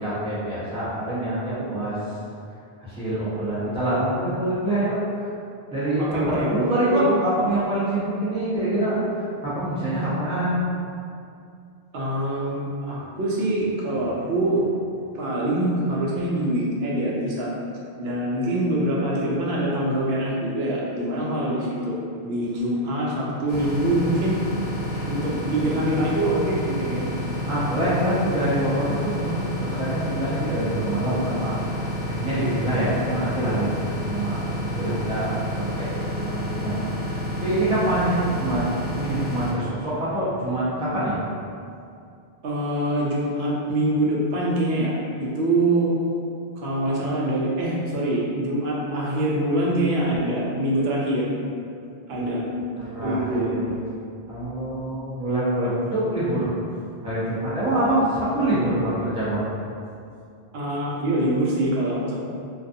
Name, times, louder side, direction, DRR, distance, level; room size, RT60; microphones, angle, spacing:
voice 1, 0.0-2.0 2.8-4.9 5.7-10.6 25.3-25.9 27.5-31.5 32.1-33.7 34.1-36.9 37.3-38.6 39.0-41.2 52.1-52.6 52.9-53.6 54.3-56.6 57.0-59.4, right 1 dB, 5° right, -10 dB, 0.5 m, -25 dB
voice 2, 6.0-6.5 6.9-7.1 11.9-14.6 15.1-17.5 18.0-22.0 22.2-24.4 25.1-27.1 42.4-46.0 46.6-51.3 52.1-52.4 53.0-53.5 60.5-62.1, right 1 dB, 75° right, -4 dB, 0.8 m, -24 dB
sound 1, 23.5-39.5, equal, 70° left, 0.9 m, -29 dB
2.3 x 2.3 x 2.6 m, 2.5 s
omnidirectional pair, 1.1 m